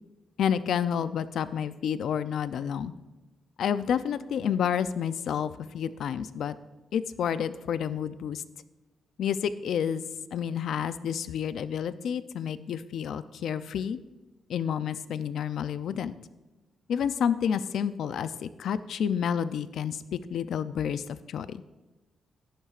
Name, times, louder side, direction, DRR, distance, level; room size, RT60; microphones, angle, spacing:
voice 1, 0.4-2.9 3.6-6.5 6.9-8.4 9.2-10.0 10.3-14.0 14.5-16.1 16.9-21.6, left 8 dB, 75° left, 13 dB, 0.5 m, -29 dB
13.0 x 11.5 x 2.5 m, 1.1 s
cardioid pair, 120°, 0 cm